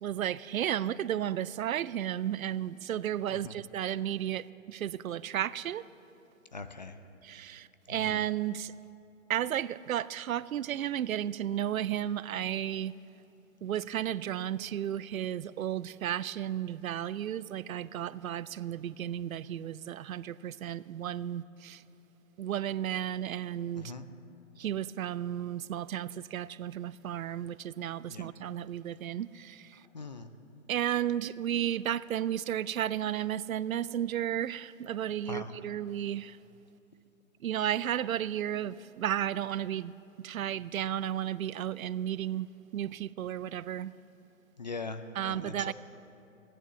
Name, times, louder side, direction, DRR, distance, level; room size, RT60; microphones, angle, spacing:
voice 1, 0.0-5.8 7.2-8.7 9.3-12.9 13.6-21.8 22.4-23.9 24.6-29.7 30.7-36.4 37.4-39.9 40.2-42.5 42.7-43.9 45.2-45.7, right 11 dB, 80° right, 0.5 m, -33 dB
voice 2, 6.5-7.0 7.9-8.1 23.7-24.1 28.1-28.3 29.9-30.3 35.2-35.6 44.6-45.7, left 3 dB, 35° left, 0.4 m, -41 dB
15.5 x 9.9 x 6.8 m
hypercardioid pair, 160°, 41 cm